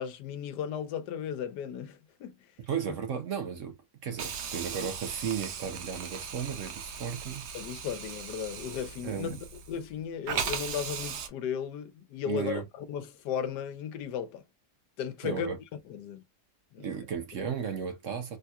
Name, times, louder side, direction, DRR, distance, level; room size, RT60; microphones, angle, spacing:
voice 1, 0.0-2.3 7.5-9.4 9.7-14.4 15.0-15.6 15.8-16.2 16.7-16.9, left 8 dB, 85° left, 1.2 m, -35 dB
voice 2, 2.7-3.7 4.0-7.4 9.0-9.4 12.3-12.6 15.2-15.6 16.8-18.4, right 7 dB, 60° right, 0.9 m, -34 dB
Hiss, 4.2-9.9 10.3-11.3, right 7 dB, 90° right, 1.4 m, -38 dB
3.5 x 2.8 x 2.3 m
omnidirectional pair, 1.8 m